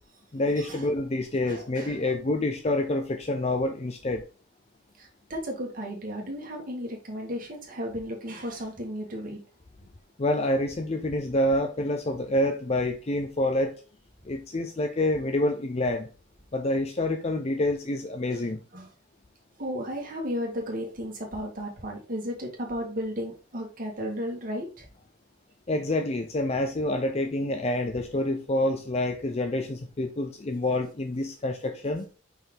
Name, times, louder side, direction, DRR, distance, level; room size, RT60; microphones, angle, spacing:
voice 1, 0.3-4.2 10.2-13.7 14.2-16.1 16.5-18.6 25.7-32.1, left 1 dB, 35° left, 0.5 m, -27 dB
voice 2, 1.4-2.1 5.0-9.4 18.3-18.4 18.7-18.9 19.6-24.9, equal, 45° right, 2.0 m, -34 dB
5.6 x 4.4 x 3.8 m
head